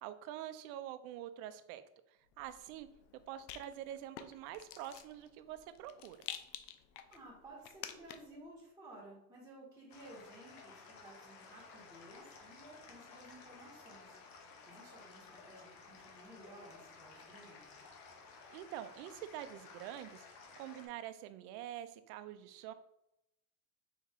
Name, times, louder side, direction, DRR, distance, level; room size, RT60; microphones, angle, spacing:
voice 1, 0.0-1.8 2.4-2.9 3.3-6.2 18.5-20.3 20.6-22.7, right 11 dB, 65° right, 11 dB, 0.6 m, -46 dB
Rattle, 2.3-8.4, left 10 dB, 90° left, 0.6 m, -51 dB
voice 2, 7.1-14.2 14.7-17.7, right 1 dB, 5° right, -8 dB, 1.7 m, -55 dB
sound 1, 9.9-20.9, left 4 dB, 45° left, 1.1 m, -55 dB
4.4 x 3.1 x 3.7 m, 0.84 s
supercardioid pair, 135°, 49 cm